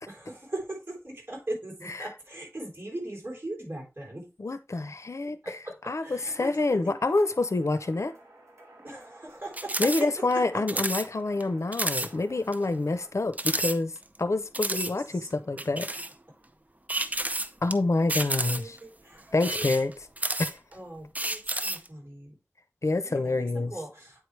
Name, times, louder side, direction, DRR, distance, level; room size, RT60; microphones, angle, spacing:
voice 1, 0.1-4.3 5.2-5.7 6.0-7.0 8.8-10.8 14.7-15.3 18.2-19.7 20.7-22.4 23.0-24.3, right 1 dB, 50° right, 3.5 m, -40 dB
voice 2, 4.4-5.4 5.9-8.1 9.8-13.9 14.2-15.9 17.6-18.8 19.3-19.9 20.4-20.6 22.8-23.7, left 2 dB, 80° left, 0.6 m, -27 dB
sound 1, 6.2-13.1, right 1 dB, 75° right, 2.0 m, -53 dB
sound 2, 9.5-10.0 10.3-10.4 10.7-11.1 11.4-11.5 11.7-12.1 12.5-12.6 13.3-14.2 14.5-14.9 15.6-16.1 16.9-17.7 18.1-18.8 19.3-20.7 21.1-21.9, right 1 dB, 30° right, 0.6 m, -30 dB
8.7 x 4.7 x 3.2 m
wide cardioid pair, 45°, 5 cm